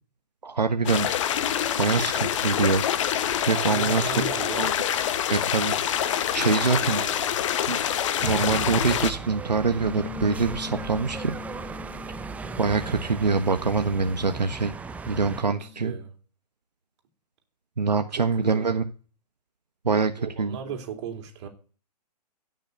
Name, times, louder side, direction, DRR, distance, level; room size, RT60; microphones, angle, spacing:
voice 1, 0.4-1.1 1.8-4.1 4.6-4.7 5.3-5.8 6.3-7.0 7.7-7.8 8.2-11.3 12.6-14.7 15.1-15.9 17.8-18.9 19.8-20.1 20.4-20.6, right 4 dB, 85° right, 1.4 m, -24 dB
sound 1, 0.9-9.1, left 10 dB, 50° left, 1.2 m, -26 dB
voice 2, 3.5-4.7 6.7-7.4 15.4-16.2 18.2-18.8 19.9-21.5, right 7 dB, 40° right, 3.5 m, -37 dB
sound 2, 8.2-15.4, right 4 dB, 5° right, 0.6 m, -37 dB
Bass guitar, 9.8-16.1, left 15 dB, 20° left, 1.1 m, -43 dB
17.0 x 6.6 x 8.4 m
figure-of-eight pair, 125°, 21 cm